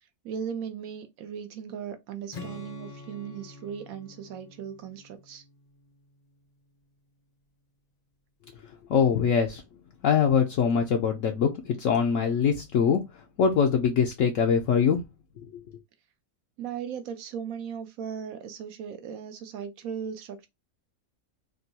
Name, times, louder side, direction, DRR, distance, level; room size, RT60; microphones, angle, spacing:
voice 1, 0.2-5.4 16.6-20.5, right 7 dB, 75° right, 1.0 m, -37 dB
Strum, 2.3-6.4, left 3 dB, 40° left, 0.6 m, -46 dB
voice 2, 8.9-9.6 10.0-13.0 13.4-15.0, left 6 dB, 70° left, 0.9 m, -23 dB
3.7 x 2.3 x 2.7 m
omnidirectional pair, 1.6 m